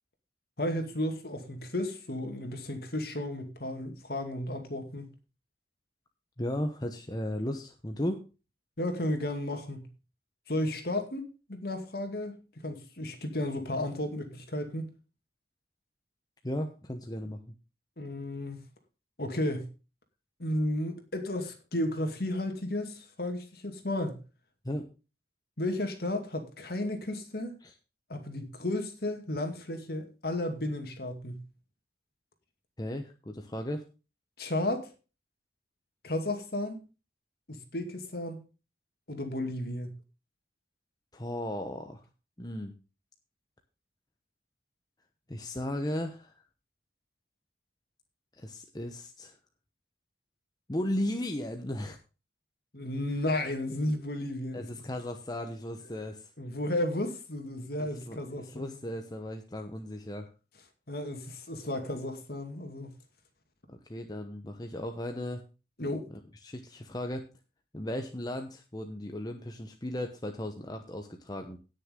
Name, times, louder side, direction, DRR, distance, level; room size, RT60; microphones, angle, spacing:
voice 1, 0.6-5.1 8.8-9.9 10.5-14.9 18.0-18.6 19.2-19.7 20.4-24.2 25.6-27.5 28.1-31.4 34.4-34.9 36.0-36.8 37.5-38.4 39.1-39.9 52.7-54.7 56.4-58.7 60.9-62.9 65.8-66.1, left 1 dB, 55° left, 2.3 m, -33 dB
voice 2, 6.4-8.2 16.4-17.5 24.6-24.9 27.6-27.7 32.8-33.8 41.1-42.0 42.4-42.7 45.3-46.4 48.3-49.4 50.7-52.0 54.5-56.3 57.8-60.3 63.7-65.4 66.4-67.2 67.7-71.6, left 1 dB, 20° left, 0.9 m, -36 dB
17.0 x 6.6 x 3.7 m
head